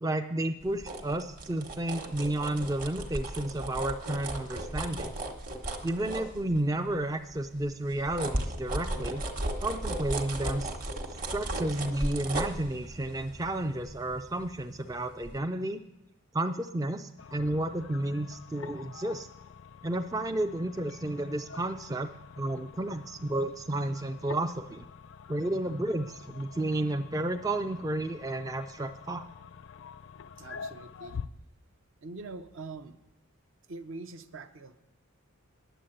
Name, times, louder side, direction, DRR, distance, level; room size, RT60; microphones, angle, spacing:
voice 1, 0.0-5.1 5.8-9.3 9.6-10.7 11.3-15.8 16.3-19.3 19.8-24.9 25.3-29.2, right 1 dB, 15° right, 6 dB, 0.3 m, -32 dB
sound 1, 0.6-6.9 7.3-14.9 15.2-15.4, right 1 dB, 35° right, 1.1 m, -36 dB
sound 2, 17.2-31.3, left 6 dB, 60° left, 0.4 m, -47 dB
voice 2, 30.4-31.2 32.0-33.0 33.7-34.8, right 3 dB, 60° right, 9 dB, 0.7 m, -43 dB
10.0 x 7.6 x 7.8 m, 0.98 s
head